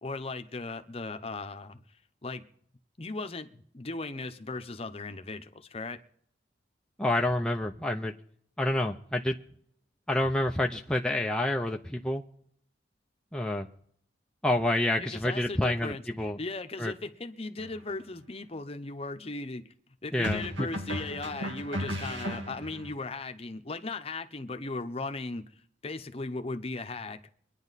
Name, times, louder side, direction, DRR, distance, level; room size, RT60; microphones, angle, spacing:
voice 1, 0.0-2.4 3.0-6.0 15.0-19.6 20.0-25.4 25.8-27.2, left 3 dB, 30° left, 0.8 m, -37 dB
voice 2, 7.0-8.1 8.6-9.4 10.1-12.2 13.3-13.7 14.4-16.4 16.8-16.9 20.1-20.7, left 1 dB, 5° left, 0.5 m, -28 dB
sound 1, 17.6-17.8 20.2-22.9, equal, 80° right, 2.0 m, -35 dB
24.0 x 9.9 x 4.1 m
head